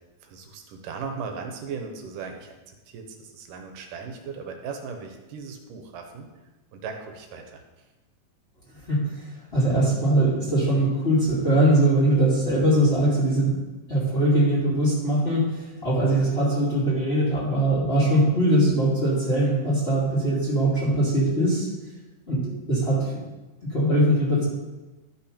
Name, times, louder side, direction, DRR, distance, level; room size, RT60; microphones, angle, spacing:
voice 1, 0.2-6.3 6.7-7.6, right 5 dB, 80° right, 4 dB, 2.6 m, -37 dB
voice 2, 8.9-9.2 9.5-13.6 13.9-21.7 22.3-23.1 23.7-24.4, right 1 dB, 20° left, -7 dB, 2.4 m, -21 dB
13.0 x 5.8 x 5.1 m, 1.1 s
omnidirectional pair, 3.8 m